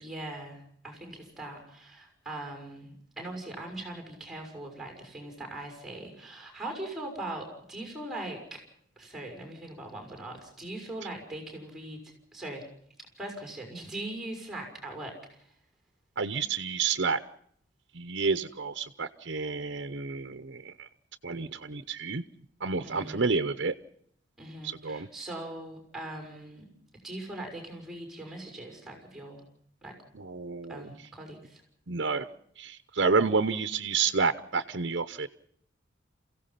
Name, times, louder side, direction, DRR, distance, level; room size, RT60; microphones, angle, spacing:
voice 1, 0.0-8.6 9.0-12.0 12.3-12.7 13.2-15.5 22.8-23.2 24.4-26.6 27.0-29.4 29.8-29.9 30.7-31.6, right 1 dB, ahead, 3 dB, 6.3 m, -41 dB
voice 2, 16.2-17.2 17.9-20.9 21.2-22.2 22.6-23.7 24.6-25.1 30.1-30.9 31.9-32.3 32.6-35.3, right 4 dB, 65° right, 9 dB, 0.8 m, -29 dB
28.5 x 16.5 x 5.8 m, 0.67 s
head